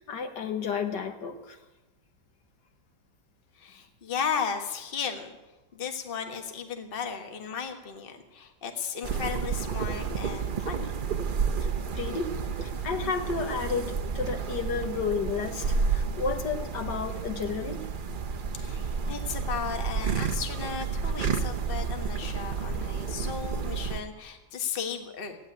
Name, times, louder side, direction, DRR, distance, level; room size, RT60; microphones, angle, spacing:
voice 1, 0.0-1.6 11.6-17.9, left 5 dB, 65° left, 5 dB, 1.7 m, -32 dB
voice 2, 3.5-5.3 5.7-10.9 18.5-25.4, left 7 dB, 30° left, 5 dB, 1.5 m, -35 dB
sound 1, 9.0-24.0, right 5 dB, 60° right, 0.5 m, -31 dB
15.5 x 9.4 x 9.7 m, 1.1 s
omnidirectional pair, 2.0 m